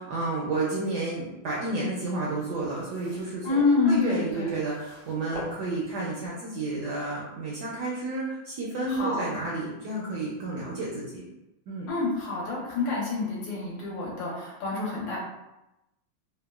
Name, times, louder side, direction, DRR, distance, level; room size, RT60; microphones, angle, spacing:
voice 1, 0.1-11.2 11.7-11.9, right 2 dB, 75° right, -5 dB, 1.0 m, -31 dB
sound 1, 2.1-6.2 7.0-7.1, left 1 dB, 55° left, 0.5 m, -46 dB
voice 2, 3.4-4.5 8.9-9.2 11.9-15.2, left 4 dB, 70° left, -5 dB, 1.6 m, -27 dB
3.5 x 2.1 x 2.3 m, 0.94 s
omnidirectional pair, 2.2 m